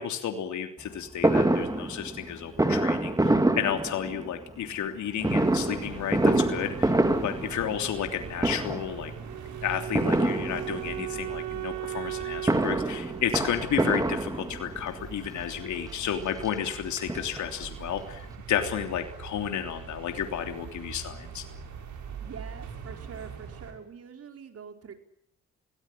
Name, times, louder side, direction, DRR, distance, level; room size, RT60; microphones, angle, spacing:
voice 1, 0.0-9.1 9.6-21.4, left 9 dB, 70° left, 6 dB, 3.2 m, -32 dB
Fireworks, 1.2-4.4 5.2-8.1 8.4-9.0 9.9-11.0 12.2-14.8 15.6-15.7 16.0-16.1 16.4-17.7 18.0-18.1 18.3-18.4, right 2 dB, 10° right, 2.7 m, -26 dB
sound 1, 5.2-23.7, right 6 dB, 70° right, 6.6 m, -43 dB
Wind instrument woodwind instrument, 9.2-14.3, right 13 dB, 90° right, 1.9 m, -37 dB
voice 2, 22.2-24.9, right 6 dB, 50° right, 6 dB, 4.8 m, -44 dB
24.0 x 18.0 x 10.0 m, 0.77 s
cardioid pair, 90°, 30 cm